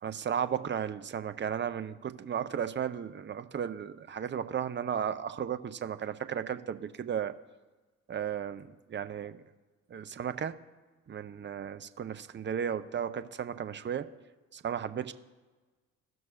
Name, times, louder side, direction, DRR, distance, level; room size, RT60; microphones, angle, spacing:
voice 1, 0.0-7.3 8.1-9.4 9.9-10.6 11.1-14.1 14.5-15.1, right 8 dB, 30° right, 12 dB, 0.6 m, -34 dB
16.5 x 6.2 x 2.5 m, 1.3 s
hypercardioid pair, 50°, 39 cm